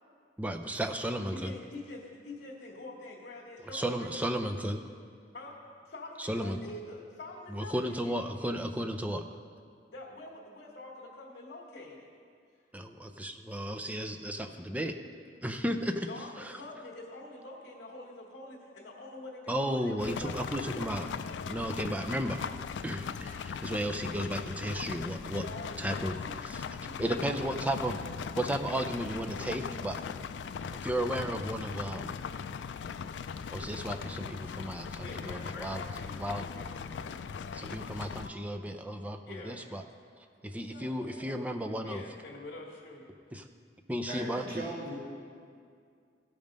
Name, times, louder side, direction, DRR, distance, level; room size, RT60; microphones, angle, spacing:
voice 1, 0.4-1.5 3.7-4.8 6.2-6.6 7.5-9.3 12.7-15.0 15.4-16.1 16.4-16.5 19.5-21.1 21.5-22.4 22.8-25.5 25.8-26.6 27.0-28.0 28.4-30.0 30.8-32.2 33.5-35.8 36.2-36.5 37.5-39.8 40.4-42.0 43.3-43.5 43.9-44.6, equal, 10° right, 6 dB, 0.5 m, -34 dB
voice 2, 1.3-4.2 5.3-5.6 5.8-8.1 9.9-12.1 13.4-13.5 14.4-14.5 16.1-20.8 25.4-26.4 26.8-27.7 32.7-32.8 35.0-37.2 37.6-37.7 38.0-38.7 39.2-39.6 40.7-41.4 41.8-43.0, left 2 dB, 60° left, -6 dB, 1.5 m, -46 dB
sound 1, 20.0-38.3, left 6 dB, 80° left, 0.3 m, -39 dB
voice 3, 44.1-45.0, right 1 dB, 60° right, -6 dB, 2.1 m, -38 dB
15.5 x 5.3 x 5.2 m, 2.2 s
head